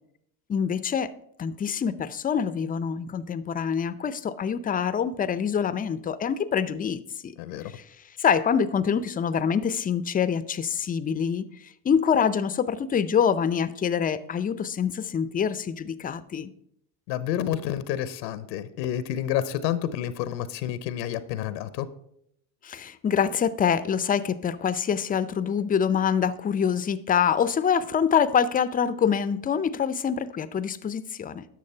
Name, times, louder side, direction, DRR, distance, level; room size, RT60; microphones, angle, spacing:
voice 1, 0.5-1.1 1.4-7.4 7.6-7.8 8.2-11.5 11.8-16.5 22.6-31.4, left 7 dB, 20° left, 15 dB, 0.4 m, -25 dB
voice 2, 7.4-7.7 17.1-21.9, left 11 dB, 85° left, 15 dB, 0.8 m, -29 dB
10.5 x 6.4 x 4.3 m, 0.74 s
supercardioid pair, 90°, 49 cm